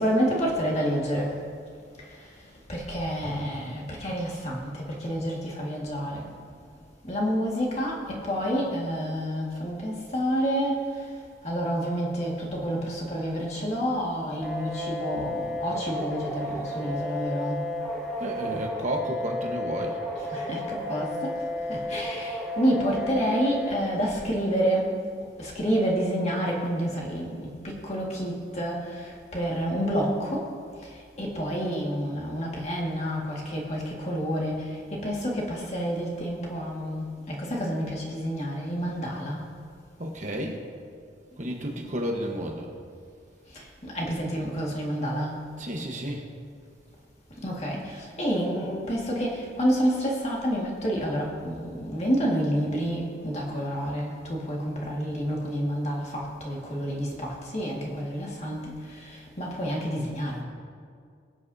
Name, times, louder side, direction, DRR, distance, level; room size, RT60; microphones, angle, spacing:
voice 1, 0.0-1.3 2.0-2.2 2.7-6.2 7.0-10.9 11.4-17.6 20.3-24.9 25.4-30.5 31.2-39.4 43.5-43.7 43.9-45.4 47.4-60.4, equal, 35° left, -2 dB, 1.9 m, -29 dB
sound 1, 14.4-23.7, left 1 dB, ahead, 2.0 m, -33 dB
voice 2, 18.2-20.0 40.0-40.6 41.4-42.7 45.6-46.2, equal, 40° right, 1 dB, 1.2 m, -31 dB
22.0 x 8.4 x 2.8 m, 2.2 s
head